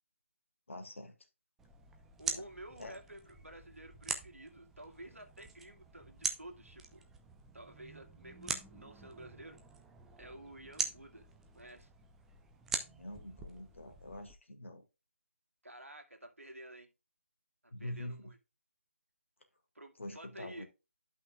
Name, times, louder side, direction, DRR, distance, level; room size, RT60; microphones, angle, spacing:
voice 1, 0.7-1.1 2.3-2.4 2.8-3.0 13.0-14.8 17.7-18.3 20.0-20.6, left 1 dB, 65° left, 1.9 m, -45 dB
sound 1, 1.6-14.4, right 5 dB, 5° right, 0.3 m, -43 dB
voice 2, 2.2-7.0 7.5-9.6 10.2-11.3 11.5-11.9 15.6-16.9 17.6-18.4 19.8-20.6, right 1 dB, 85° right, 1.8 m, -51 dB
12.5 x 5.7 x 2.3 m
figure-of-eight pair, 155°, 7 cm